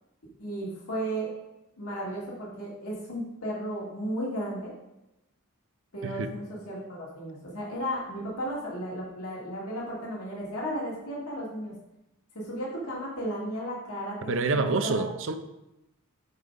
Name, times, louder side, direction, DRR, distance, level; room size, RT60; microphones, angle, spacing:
voice 1, 0.4-1.3 1.8-4.7 5.9-11.7 12.3-14.2 14.8-15.0, equal, 80° left, -5 dB, 2.1 m, -34 dB
voice 2, 14.3-15.4, right 3 dB, 60° right, 9 dB, 0.6 m, -27 dB
8.1 x 3.8 x 5.2 m, 0.93 s
head